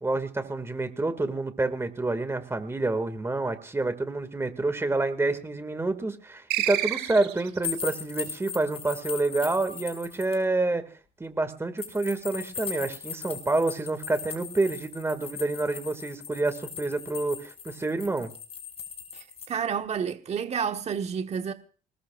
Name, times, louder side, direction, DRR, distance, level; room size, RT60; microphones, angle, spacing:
voice 1, 0.0-10.9 11.2-18.3, right 2 dB, 15° right, 2.4 m, -28 dB
sound 1, 6.5-7.7, right 14 dB, 85° right, 3.1 m, -29 dB
sound 2, 7.6-10.3 11.8-19.5, left 7 dB, 35° left, 5.8 m, -39 dB
voice 2, 19.1-21.5, right 7 dB, 40° right, 1.4 m, -30 dB
24.0 x 20.0 x 2.6 m
cardioid pair, 110°, 17 cm